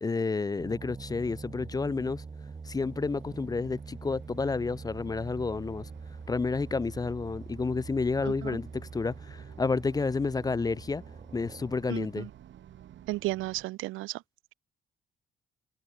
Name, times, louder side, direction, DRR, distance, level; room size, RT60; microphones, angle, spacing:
voice 1, 0.0-2.2 2.7-5.9 6.3-11.0 11.3-12.3, left 4 dB, 20° left, 0.4 m, -30 dB
sound 1, 0.6-11.9, right 4 dB, 30° right, 4.1 m, -44 dB
sound 2, 1.7-13.6, right 11 dB, 70° right, 3.4 m, -54 dB
voice 2, 11.9-12.3 13.1-14.2, right 19 dB, 90° right, 0.5 m, -33 dB
cardioid pair, 90°, 20 cm